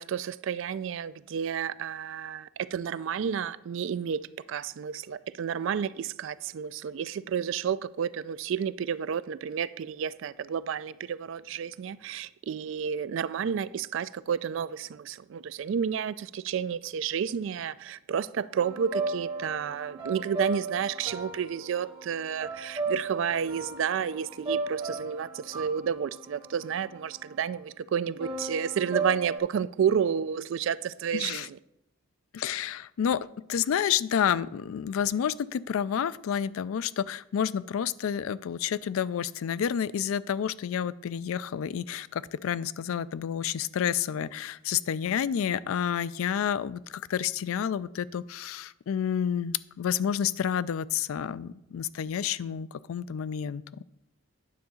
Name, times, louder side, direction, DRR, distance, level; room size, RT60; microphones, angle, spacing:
voice 1, 0.0-4.2 4.5-31.6, right 7 dB, 65° right, 0.3 m, -31 dB
sound 1, 18.6-27.4 28.2-29.4, right 3 dB, 25° right, 1.8 m, -35 dB
voice 2, 31.1-31.5 32.3-53.6, left 8 dB, 75° left, 0.3 m, -29 dB
9.4 x 3.8 x 7.0 m
head